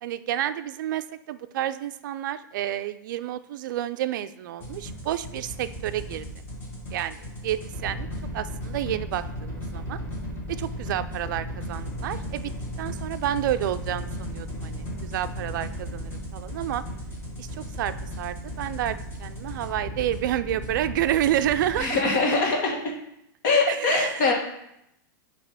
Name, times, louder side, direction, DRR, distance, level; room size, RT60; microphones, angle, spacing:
voice 1, 0.0-6.3 6.9-7.2 7.4-8.1 8.3-10.0 10.6-12.5 12.8-16.8 17.4-22.0 23.7-24.3, right 12 dB, 65° right, 12 dB, 0.4 m, -29 dB
sound 1, 4.6-21.8, equal, 20° left, 1.8 m, -35 dB
voice 2, 21.8-22.8 23.4-24.3, left 3 dB, 50° left, 0 dB, 1.6 m, -22 dB
7.0 x 2.9 x 5.4 m, 0.80 s
hypercardioid pair, 135°, 11 cm